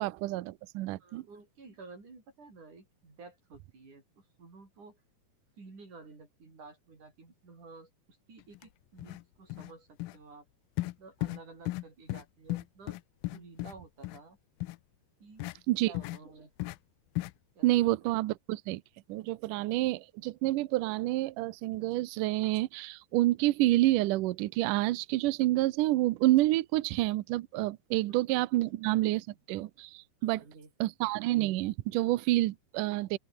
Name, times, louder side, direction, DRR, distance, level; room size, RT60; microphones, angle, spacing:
voice 1, 0.0-1.2 15.7-15.9 17.6-18.8 19.1-30.4 30.8-33.2, right 17 dB, 85° right, 1.8 m, -28 dB
voice 2, 1.0-5.0 5.6-10.5 10.8-13.0 13.3-14.4 15.2-15.5 15.9-16.5 17.6-18.2 28.1-28.2 29.1-29.3 30.2-30.9, right 3 dB, 45° right, 8.8 m, -52 dB
sound 1, 8.5-8.6 9.0-9.2 9.5-9.7 10.0-10.2 10.8-10.9 11.2-11.4 11.7-11.8 12.1-12.2 12.5-13.7 14.0-14.2 14.6-14.8 15.4-15.5 15.9-16.2 16.6-16.8 17.1-17.3, left 19 dB, 85° left, 2.1 m, -35 dB
open air
omnidirectional pair, 4.8 m